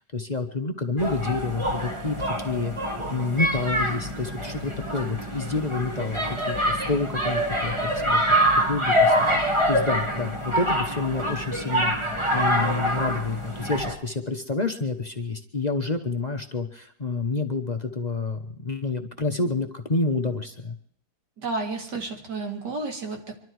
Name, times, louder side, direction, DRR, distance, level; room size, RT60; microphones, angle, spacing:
voice 1, 0.0-8.2 8.5-20.8, left 3 dB, 30° left, 5 dB, 0.9 m, -29 dB
sound 1, 1.0-13.9, equal, 20° right, 1.8 m, -25 dB
voice 2, 21.4-23.4, right 3 dB, 90° right, 3 dB, 2.8 m, -31 dB
25.0 x 12.5 x 4.7 m, 0.66 s
omnidirectional pair, 1.8 m